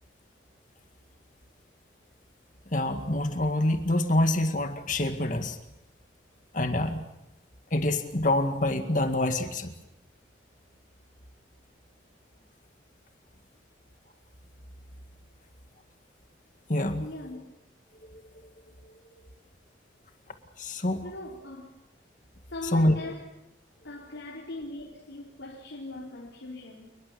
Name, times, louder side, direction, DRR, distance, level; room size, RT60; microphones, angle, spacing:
voice 1, 2.7-5.6 6.5-7.0 7.7-9.7 16.7-17.1 18.1-18.2 20.6-21.1 22.7-22.9, left 1 dB, 45° left, 6 dB, 2.0 m, -26 dB
voice 2, 17.0-17.4 21.0-21.8 22.5-23.3 23.8-27.0, left 1 dB, 85° left, -2 dB, 4.4 m, -40 dB
29.0 x 21.0 x 7.1 m, 0.85 s
head